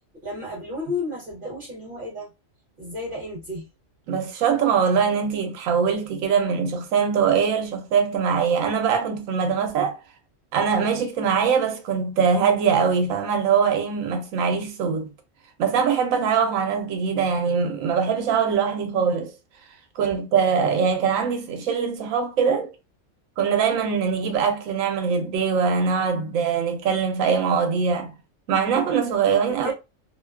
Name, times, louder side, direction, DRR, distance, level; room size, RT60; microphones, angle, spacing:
voice 1, 0.2-2.3 2.8-3.7 29.5-29.7, left 2 dB, 50° right, 0.8 m, -32 dB
voice 2, 4.1-10.0 10.5-15.1 15.6-19.3 20.0-22.7 23.4-28.1 28.5-29.7, right 6 dB, 90° right, 1.0 m, -22 dB
2.6 x 2.2 x 2.2 m
omnidirectional pair, 1.4 m